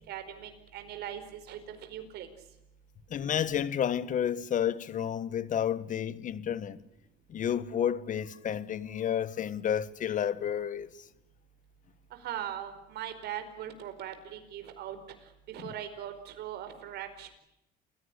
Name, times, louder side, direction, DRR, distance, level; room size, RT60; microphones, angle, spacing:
voice 1, 0.1-2.3 12.1-15.0 15.5-17.3, right 10 dB, 75° right, 4.8 m, -40 dB
voice 2, 3.1-6.8 7.3-10.9, left 9 dB, 50° left, 1.6 m, -31 dB
28.5 x 16.5 x 9.9 m
cardioid pair, 110°, 17 cm